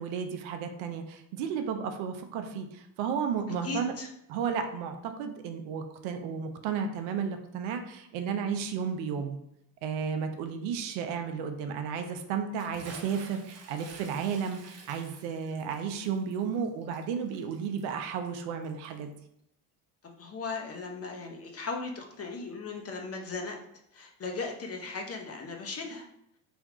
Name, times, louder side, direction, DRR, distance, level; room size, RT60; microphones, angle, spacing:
voice 1, 0.0-3.9 4.3-9.4 9.8-19.1, right 6 dB, 70° right, 6 dB, 0.7 m, -33 dB
voice 2, 3.6-4.1 20.0-23.6 23.9-26.1, left 3 dB, 30° left, 2 dB, 0.8 m, -37 dB
Bathtub (filling or washing) / Splash splatter, 12.6-19.1, right 4 dB, 35° right, 0.7 m, -51 dB
3.5 x 2.3 x 3.5 m, 0.75 s
supercardioid pair, 75°, 48 cm